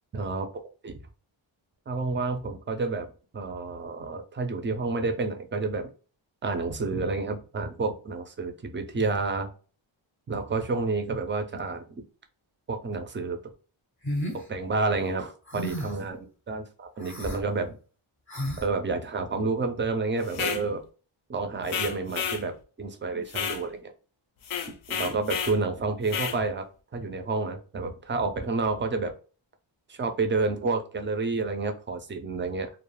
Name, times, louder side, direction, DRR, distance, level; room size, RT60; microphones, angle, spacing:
voice 1, 0.1-0.5 0.8-1.0 1.9-3.1 3.3-5.9 6.4-9.5 10.3-11.8 12.7-13.4 14.3-17.7 18.6-20.8 21.3-23.8 24.9-26.7 26.9-29.1 29.9-32.7, right 3 dB, 25° right, 6 dB, 0.3 m, -29 dB
sound 1, 14.0-14.4 15.5-16.0 17.0-17.4 18.3-18.7, equal, 25° left, 0.5 m, -32 dB
sound 2, 20.3-20.6 21.7-22.4 23.3-23.6 24.4-25.6 26.1-26.4, left 7 dB, 75° left, 0.6 m, -31 dB
2.3 x 2.0 x 3.0 m, 0.37 s
wide cardioid pair, 125°, 49 cm